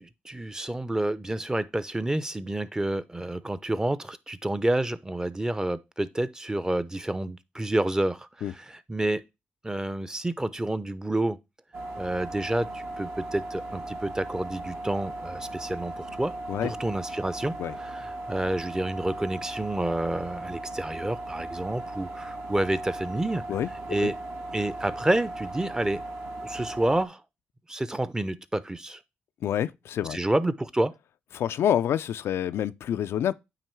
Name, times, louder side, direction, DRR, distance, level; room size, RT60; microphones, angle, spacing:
voice 1, 0.0-9.2 9.6-11.4 12.0-16.3 16.6-23.4 23.9-24.1 24.5-26.0 26.4-27.2 27.7-29.0 30.1-30.9, right 1 dB, 15° right, 0.6 m, -29 dB
sound 1, 11.7-27.1, right 2 dB, 65° right, 1.7 m, -37 dB
voice 2, 29.4-30.2 31.3-33.3, left 10 dB, 75° left, 0.4 m, -27 dB
9.0 x 3.0 x 4.5 m
supercardioid pair, 60°, 4 cm